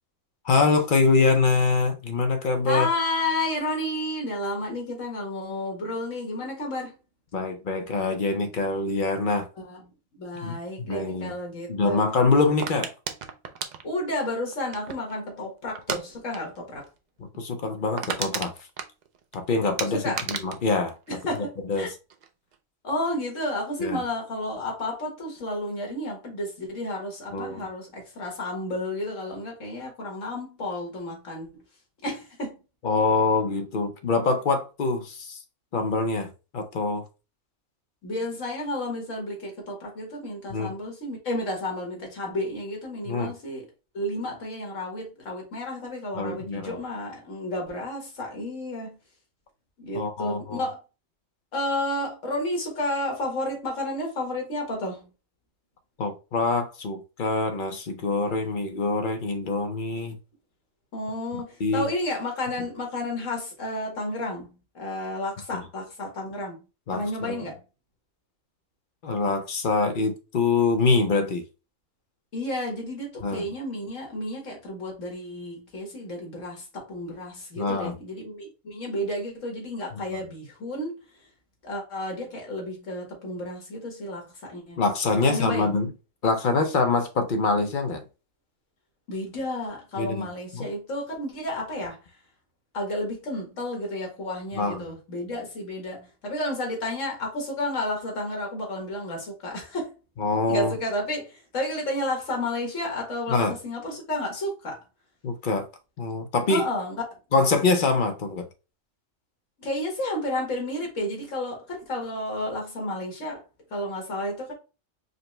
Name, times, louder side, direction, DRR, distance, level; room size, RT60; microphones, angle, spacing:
voice 1, 0.4-2.9 7.3-9.5 10.4-11.4 11.7-12.9 17.4-18.5 19.3-21.2 21.6-21.9 23.8-24.0 27.3-27.7 32.8-35.4 35.7-37.0 40.5-40.7 43.1-43.3 46.2-46.8 49.9-50.6 56.0-60.2 61.6-61.9 65.5-65.6 66.9-67.4 69.0-71.4 73.2-73.4 77.6-78.0 79.9-80.2 84.8-85.9 86.2-88.0 90.0-90.3 90.5-90.7 94.5-94.8 100.2-100.7 103.3-103.5 105.2-105.7 106.0-106.6 107.3-108.5, left 3 dB, 50° left, 0.6 m, -24 dB
voice 2, 2.7-7.0 9.6-9.9 10.2-12.0 13.8-16.9 19.9-20.2 21.1-21.9 22.8-31.5 32.0-32.6 38.0-43.7 43.9-49.0 49.8-50.8 51.5-55.1 60.9-66.7 66.9-67.6 72.3-81.0 81.6-84.8 85.2-85.7 89.1-92.0 92.7-100.0 100.5-104.8 106.5-106.9 109.6-113.4 113.7-114.5, left 1 dB, 70° left, 1.8 m, -31 dB
sound 1, 12.6-15.2 15.8-16.0 16.3-16.6 16.8-16.9 17.3-17.4 17.7-19.4 19.8-21.8 22.1-22.6, right 6 dB, 75° right, 0.4 m, -33 dB
5.2 x 2.1 x 3.0 m
omnidirectional pair, 1.4 m